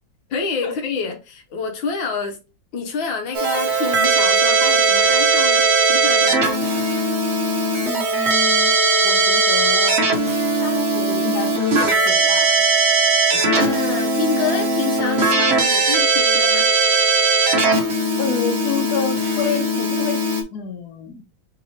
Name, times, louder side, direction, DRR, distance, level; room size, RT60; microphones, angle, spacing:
voice 1, 0.3-2.4 2.7-6.3 13.3-16.7, left 4 dB, 75° left, 1.6 m, -27 dB
Keyboard (musical), 3.3-20.4, right 3 dB, 55° right, 0.7 m, -18 dB
voice 2, 7.8-8.7 9.0-10.0 10.6-12.6 18.2-20.2 20.5-21.2, left 5 dB, 60° left, 1.3 m, -28 dB
3.8 x 2.9 x 4.2 m
omnidirectional pair, 2.2 m